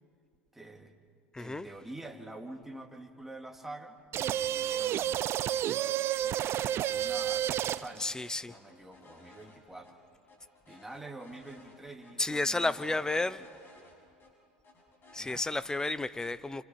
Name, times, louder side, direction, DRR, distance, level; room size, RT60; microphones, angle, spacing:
voice 1, 0.5-0.9 1.4-5.4 6.2-8.1 8.4-10.0 10.7-13.1 15.2-15.4, right 2 dB, 5° right, 2.3 m, -47 dB
voice 2, 1.3-1.7 8.0-8.5 12.2-13.4 15.1-16.6, left 2 dB, 10° left, 0.8 m, -32 dB
sound 1, 4.1-8.0, right 11 dB, 40° right, 0.6 m, -30 dB
sound 2, 6.8-7.4 7.6-7.8 8.1-9.9 10.3-11.8 12.0-12.1 12.5-14.3 14.6-15.4, left 3 dB, 35° left, 6.7 m, -57 dB
29.5 x 26.5 x 4.5 m
hypercardioid pair, 85°, 6 cm